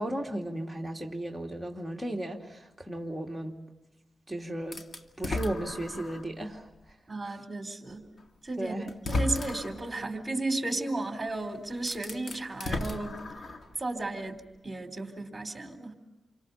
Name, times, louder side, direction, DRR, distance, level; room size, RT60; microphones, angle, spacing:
voice 1, 0.0-3.6 4.3-4.8 5.2-6.7 7.2-7.3 8.6-8.9, right 1 dB, ahead, -1 dB, 2.7 m, -35 dB
sound 1, 4.7-6.3 6.9-7.0 8.2-8.3 8.9-9.9 11.3-11.4 11.8-13.8, left 2 dB, 55° left, 2.1 m, -34 dB
voice 2, 7.1-8.1 8.4-13.2 13.8-16.0, right 2 dB, 25° right, 5 dB, 3.9 m, -34 dB
29.0 x 25.0 x 5.7 m, 1.0 s
cardioid pair, 70°, 0 cm